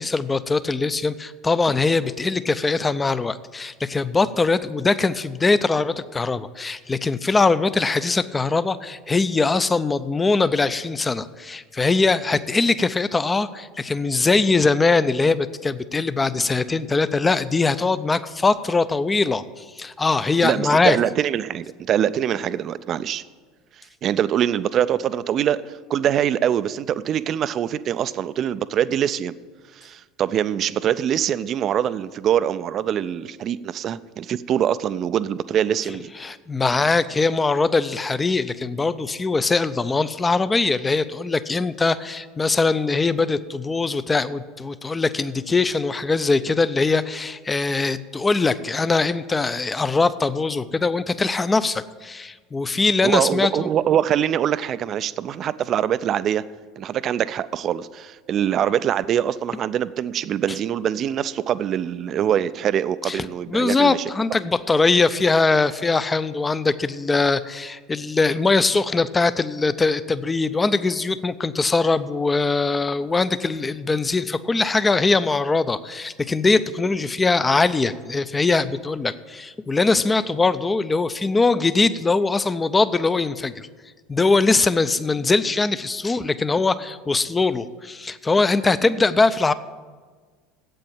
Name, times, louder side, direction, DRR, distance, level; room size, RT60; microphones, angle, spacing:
voice 1, 0.0-21.0 36.2-53.7 63.1-83.7 84.1-89.5, left 3 dB, 20° left, 0.5 m, -21 dB
voice 2, 20.4-23.2 24.0-29.4 29.8-36.1 53.0-56.5 56.8-64.0, right 10 dB, 45° right, 0.4 m, -23 dB
8.4 x 7.7 x 8.7 m
figure-of-eight pair, 75°, 0 cm